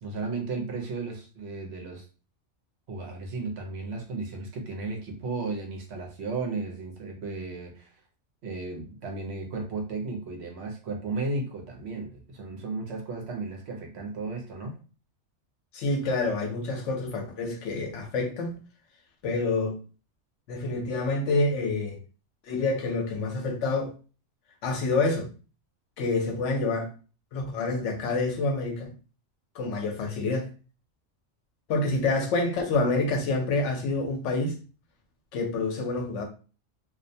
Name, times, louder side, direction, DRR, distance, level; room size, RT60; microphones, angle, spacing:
voice 1, 0.0-2.0 2.9-7.9 8.4-14.8, right 3 dB, 65° right, 0.9 m, -34 dB
voice 2, 15.7-18.6 19.2-19.8 20.5-22.0 22.4-23.9 24.6-25.3 26.0-26.9 27.3-28.9 29.5-30.5 31.7-34.6 35.3-36.2, left 3 dB, 75° left, 0.9 m, -27 dB
2.4 x 2.1 x 2.6 m
omnidirectional pair, 1.3 m